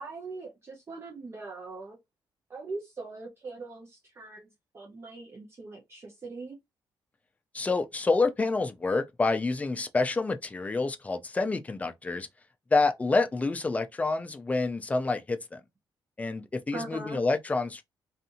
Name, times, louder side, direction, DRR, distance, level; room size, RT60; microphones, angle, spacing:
voice 1, 0.0-2.0 2.5-6.6 16.7-17.2, right 3 dB, 30° right, 0.7 m, -41 dB
voice 2, 7.5-12.3 12.7-15.6 16.2-17.8, left 3 dB, 15° left, 0.4 m, -28 dB
2.6 x 2.4 x 2.6 m
cardioid pair, 130°, 8 cm